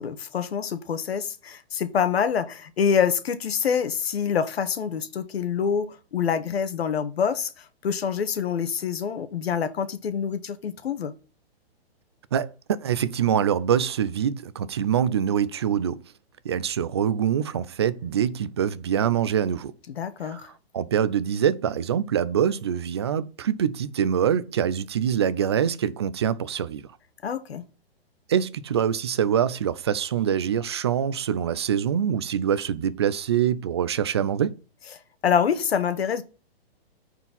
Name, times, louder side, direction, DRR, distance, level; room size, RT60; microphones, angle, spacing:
voice 1, 0.0-11.1 19.9-20.5 27.2-27.6 35.2-36.2, left 7 dB, 75° left, 1.4 m, -26 dB
voice 2, 12.3-16.0 16.4-19.7 20.2-20.5 20.7-26.8 28.3-34.5, right 9 dB, 25° right, 0.4 m, -24 dB
9.3 x 4.6 x 4.0 m
hypercardioid pair, 155°, 31 cm